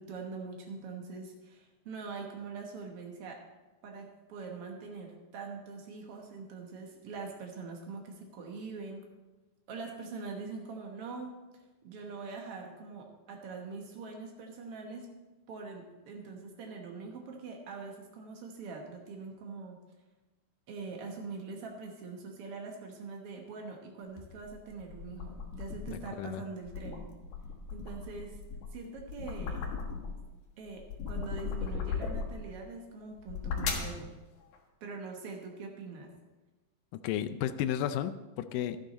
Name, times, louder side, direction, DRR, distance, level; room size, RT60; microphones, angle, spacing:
voice 1, 0.0-3.4 3.8-9.1 9.7-15.1 15.5-19.8 20.7-27.1 27.7-28.4 28.7-29.7 30.6-34.1 34.8-36.1, right 4 dB, 85° right, 1 dB, 1.2 m, -43 dB
sound 1, 24.2-26.0 26.5-30.3 30.7-32.5 33.1-34.0, left 5 dB, 70° left, 3.1 m, -37 dB
voice 2, 25.9-26.4 36.9-38.8, left 10 dB, 90° left, 10 dB, 1.9 m, -33 dB
12.0 x 10.5 x 4.2 m, 1.1 s
omnidirectional pair, 4.5 m